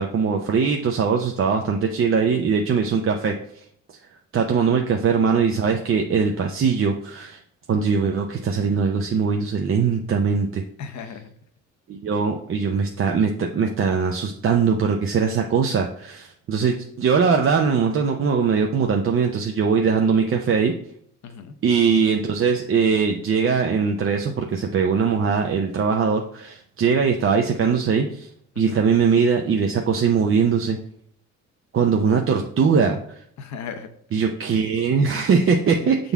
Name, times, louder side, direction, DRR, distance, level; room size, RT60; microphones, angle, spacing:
voice 1, 0.0-3.4 4.3-7.4 7.7-10.6 11.9-20.7 21.6-28.3 28.6-30.8 31.7-33.2 34.1-35.9, right 6 dB, 45° right, 3 dB, 0.6 m, -21 dB
voice 2, 10.8-11.3 21.2-21.6 28.5-28.8 32.0-32.1 33.4-33.9 35.4-35.5 35.8-36.0, left 6 dB, 65° left, 8 dB, 0.8 m, -36 dB
7.0 x 3.9 x 3.5 m, 0.66 s
cardioid pair, 90°, 30 cm